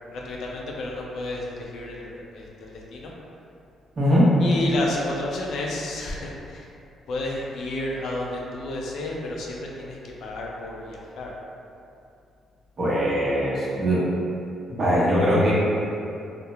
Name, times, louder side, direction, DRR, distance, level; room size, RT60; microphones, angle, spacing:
voice 1, 0.1-3.1 4.4-6.6 7.1-11.3, left 1 dB, 70° left, -2 dB, 0.4 m, -31 dB
voice 2, 4.0-4.3 12.8-14.0 14.7-15.5, equal, 45° right, -8 dB, 0.9 m, -21 dB
2.9 x 2.0 x 2.3 m, 2.6 s
cardioid pair, 90°, 0 cm